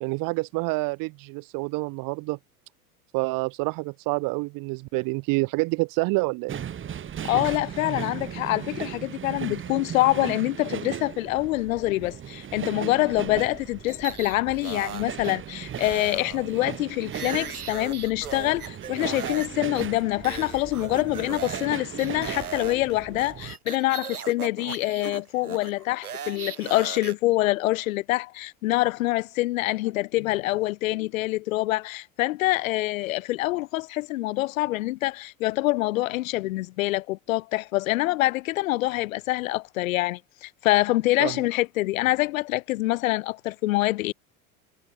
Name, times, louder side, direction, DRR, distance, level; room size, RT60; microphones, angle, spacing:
voice 1, 0.0-2.4 3.1-6.6 41.2-41.4, right 27 dB, 50° right, 1.3 m, -27 dB
sound 1, 6.5-23.6, right 9 dB, 25° right, 1.9 m, -37 dB
voice 2, 7.2-44.1, left 18 dB, 65° left, 1.1 m, -25 dB
sound 2, 13.9-15.4 15.7-19.5 19.7-19.9 20.2-21.7 22.0-27.1, right 8 dB, 85° right, 4.9 m, -38 dB
hypercardioid pair, 85°, 43 cm